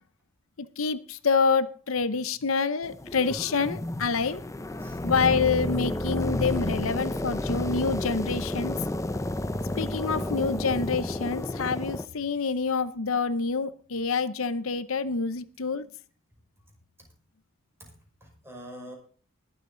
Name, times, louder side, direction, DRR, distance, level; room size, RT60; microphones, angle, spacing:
voice 1, 0.6-4.4 5.0-8.8 9.8-15.9, left 5 dB, 85° left, 13 dB, 0.8 m, -27 dB
sound 1, 2.8-12.0, left 1 dB, 15° left, 0.5 m, -31 dB
Bass Ambience, 2.9-11.2, equal, 40° right, 5.2 m, -51 dB
voice 2, 17.8-18.9, equal, 10° right, 0 dB, 5.4 m, -46 dB
21.0 x 8.3 x 3.9 m, 0.43 s
head